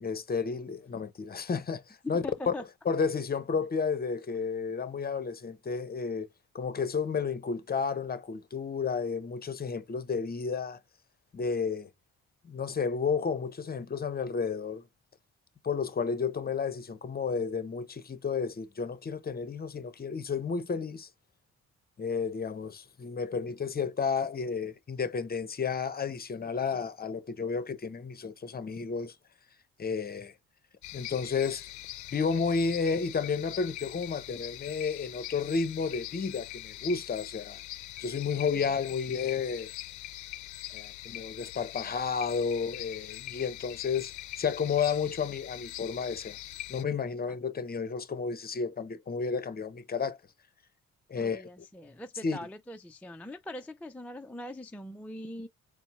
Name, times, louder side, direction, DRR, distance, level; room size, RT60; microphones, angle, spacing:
voice 1, 0.0-2.5 2.9-6.3 6.5-10.8 11.3-11.9 12.4-14.8 15.6-21.1 22.0-29.1 29.8-30.3 30.9-31.7 32.1-37.6 38.0-39.7 40.7-46.4 46.7-50.2 51.1-51.5 52.2-52.4, left 5 dB, 30° left, 0.7 m, -32 dB
voice 2, 2.0-2.7 51.2-55.5, left 1 dB, 5° left, 0.4 m, -41 dB
sound 1, 30.8-46.8, left 15 dB, 75° left, 0.5 m, -43 dB
4.3 x 2.1 x 4.1 m
cardioid pair, 90°, 30 cm